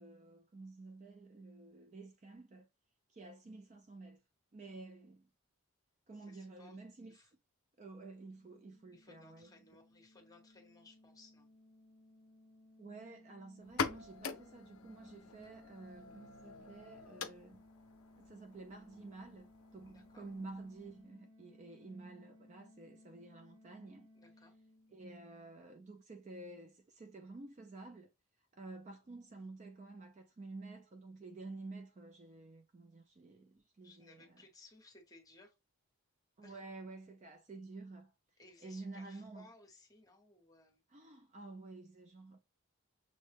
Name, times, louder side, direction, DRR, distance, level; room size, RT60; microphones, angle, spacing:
voice 1, 0.0-2.7 3.1-4.2 4.5-5.3 6.1-7.2 7.8-9.5 12.8-17.6 18.2-24.1 24.9-28.1 28.5-34.4 36.4-38.1 38.6-39.5 40.9-42.4, right 3 dB, 30° right, 0.3 m, -51 dB
voice 2, 6.2-6.8 7.0-7.3 8.9-11.5 19.9-20.3 24.1-24.5 33.8-35.6 36.4-36.6 38.4-40.8, left 2 dB, 15° left, 0.9 m, -61 dB
sound 1, 8.1-25.6, left 1 dB, 70° right, 1.6 m, -63 dB
sound 2, 13.6-21.1, left 5 dB, 70° left, 0.5 m, -45 dB
6.3 x 2.1 x 3.3 m
head